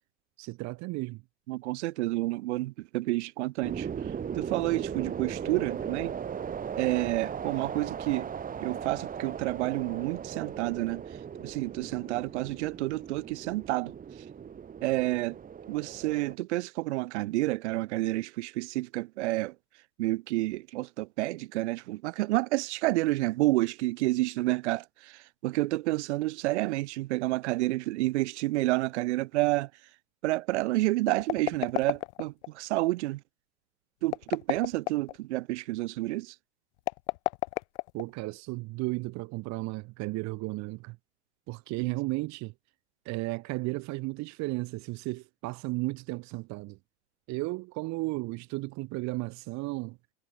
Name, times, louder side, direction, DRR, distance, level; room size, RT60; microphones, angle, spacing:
voice 1, 0.4-1.2 37.9-41.0 41.5-42.5 43.0-46.8 47.3-50.0, right 23 dB, 55° right, 2.6 m, -34 dB
voice 2, 1.5-3.9 4.3-6.1 6.8-8.3 8.6-11.0 11.4-13.9 14.8-15.4 15.7-19.5 20.0-29.7 30.2-33.2 34.0-36.3 41.8-42.0, right 19 dB, 85° right, 1.8 m, -29 dB
sound 1, 3.6-16.4, right 7 dB, 25° right, 4.2 m, -38 dB
sound 2, 31.0-32.5 34.0-35.2 36.8-38.3, left 21 dB, 80° left, 2.9 m, -32 dB
supercardioid pair, 130°, 33 cm